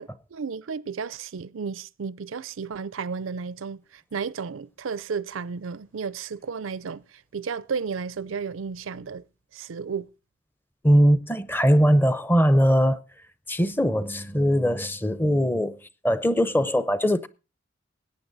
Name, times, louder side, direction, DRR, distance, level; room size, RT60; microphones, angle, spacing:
voice 1, 0.0-9.2 9.5-10.1, right 5 dB, 85° right, 0.5 m, -33 dB
voice 2, 10.8-13.0 13.5-17.3, equal, 10° left, 0.7 m, -21 dB
17.5 x 9.4 x 4.0 m
head